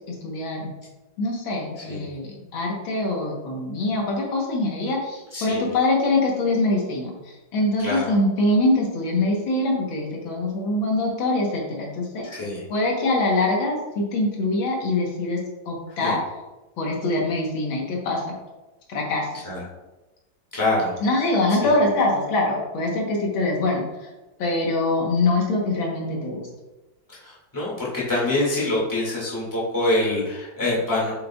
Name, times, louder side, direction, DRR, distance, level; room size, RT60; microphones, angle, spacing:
voice 1, 0.1-0.7 1.2-12.2 12.7-15.4 15.7-16.2 16.8-18.4 18.9-19.5 21.0-24.1 24.4-26.5, left 2 dB, 85° left, -1 dB, 1.9 m, -24 dB
voice 2, 5.3-5.6 7.8-8.1 12.2-12.6 16.0-16.1 19.4-19.6 20.5-20.9 21.6-21.7 27.2-31.1, left 2 dB, 10° left, -6 dB, 1.9 m, -25 dB
7.5 x 5.3 x 2.3 m, 1.1 s
omnidirectional pair, 2.1 m